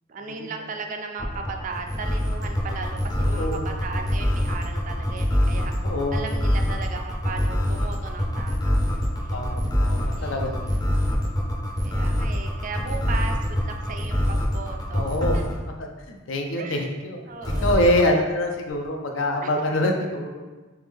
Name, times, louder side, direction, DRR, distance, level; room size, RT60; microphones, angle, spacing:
voice 1, 0.1-9.0 9.2-9.4 10.1-10.7 11.8-15.4 16.6-16.9 17.3-17.9 19.4-19.5, right 4 dB, 40° right, 3 dB, 0.3 m, -36 dB
sound 1, 1.2-15.6 17.4-18.0, equal, 20° left, 0.5 m, -24 dB
voice 2, 3.3-3.6 5.8-6.2 9.3-10.5 14.9-15.4 15.8-17.2 17.6-20.5, left 1 dB, 75° left, 3 dB, 0.5 m, -25 dB
3.5 x 3.1 x 3.4 m, 1.2 s
head